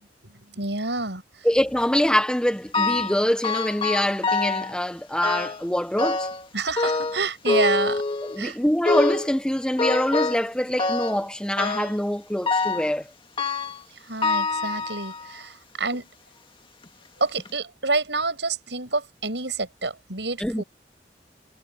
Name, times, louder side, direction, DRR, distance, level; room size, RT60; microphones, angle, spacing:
voice 1, 0.2-1.2 6.5-8.0 8.4-8.6 14.0-16.1 17.2-20.6, right 3 dB, 80° right, 7.5 m, -28 dB
voice 2, 1.4-6.3 8.3-13.1 20.4-20.6, equal, 5° left, 1.0 m, -24 dB
sound 1, 2.7-3.2 3.4-4.7 5.2-5.7 6.0-6.5 6.8-8.4 8.9-9.3 9.8-10.5 10.8-11.2 11.6-12.0 12.5-12.9 13.4-13.8 14.2-15.3 15.9-16.0 16.8-16.9 17.4-17.5, left 3 dB, 30° left, 2.0 m, -25 dB
head